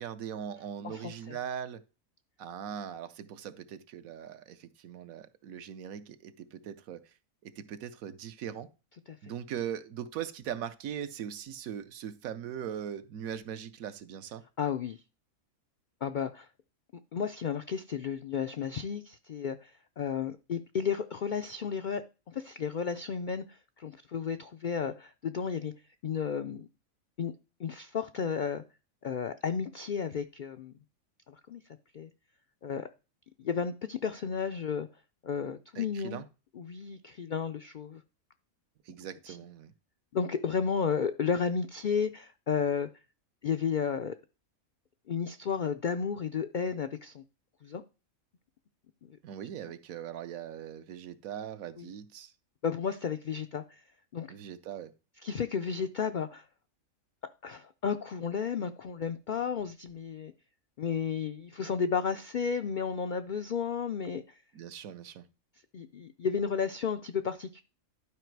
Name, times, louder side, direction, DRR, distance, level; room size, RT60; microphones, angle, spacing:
voice 1, 0.0-1.8 2.4-7.0 7.4-8.7 9.2-14.4 35.7-36.2 38.9-39.7 49.2-52.3 54.3-54.9 64.5-65.2, right 9 dB, 80° right, 11 dB, 1.2 m, -40 dB
voice 2, 0.8-1.4 9.1-9.3 14.6-15.0 16.0-16.5 16.9-25.7 26.0-26.7 27.2-27.3 27.6-28.6 29.0-30.7 31.3-31.6 31.9-32.1 32.6-32.9 33.4-34.9 35.2-36.2 36.5-38.0 39.3-39.4 40.1-42.9 43.4-44.2 45.1-47.2 47.6-47.8 49.0-49.2 51.8-51.9 52.6-53.8 54.1-54.3 55.2-56.4 57.4-60.3 60.8-64.4 65.7-67.6, left 6 dB, 85° left, 8 dB, 0.4 m, -33 dB
11.5 x 4.9 x 4.6 m, 0.32 s
omnidirectional pair, 1.5 m